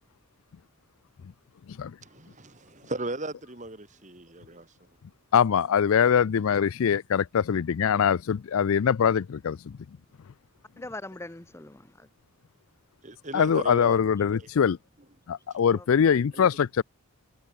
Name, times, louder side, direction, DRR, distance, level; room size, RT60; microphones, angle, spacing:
voice 1, 2.0-4.7 13.0-14.0 16.3-16.4, right 2 dB, 35° right, 2.1 m, -36 dB
voice 2, 5.3-9.8 13.3-14.8 15.3-16.8, left 7 dB, 70° left, 0.4 m, -23 dB
voice 3, 10.8-12.1 13.9-14.3 15.8-16.2, left 2 dB, 10° left, 0.6 m, -43 dB
head